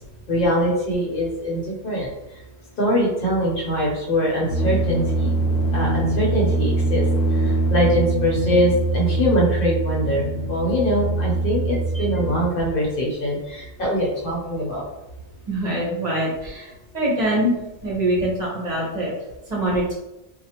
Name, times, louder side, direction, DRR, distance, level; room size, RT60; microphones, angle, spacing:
voice 1, 0.3-2.4 2.8-5.4 5.7-7.0 7.3-14.9, equal, 60° left, -4 dB, 0.9 m, -23 dB
sound 1, 4.5-12.5, right 2 dB, 85° left, 0.9 m, -23 dB
voice 2, 15.5-17.6 17.8-19.1 19.5-19.9, right 1 dB, 40° right, -6 dB, 1.1 m, -24 dB
3.2 x 2.4 x 2.8 m, 0.93 s
omnidirectional pair, 1.1 m